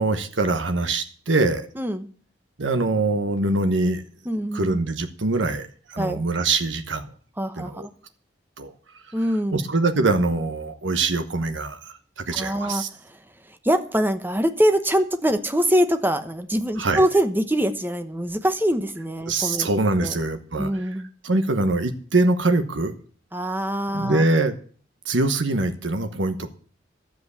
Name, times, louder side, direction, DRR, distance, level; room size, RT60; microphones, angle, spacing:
voice 1, 0.0-1.7 2.6-4.0 4.5-7.1 7.6-7.9 8.6-8.7 9.5-12.9 16.8-17.0 19.3-20.7 21.2-22.9 23.9-24.5 25.0-26.5, right 2 dB, 90° right, 8 dB, 1.1 m, -23 dB
voice 2, 1.8-2.1 4.2-4.8 6.0-6.2 7.4-7.9 9.1-9.7 12.3-13.2 13.5-19.7 20.0-20.1 20.6-21.1 23.3-24.2, equal, 10° right, 8 dB, 1.0 m, -24 dB
12.0 x 7.9 x 8.2 m, 0.43 s
head